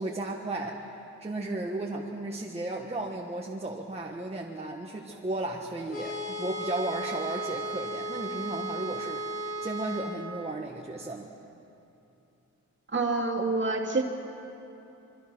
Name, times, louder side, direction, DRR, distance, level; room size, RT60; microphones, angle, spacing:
voice 1, 0.0-11.3, right 2 dB, 20° right, -1 dB, 1.4 m, -35 dB
sound 1, 5.9-10.1, right 1 dB, 45° left, 7.9 m, -35 dB
voice 2, 12.9-14.0, right 3 dB, 40° right, 2 dB, 2.5 m, -27 dB
26.0 x 24.0 x 6.2 m, 2.9 s
wide cardioid pair, 150°, 29 cm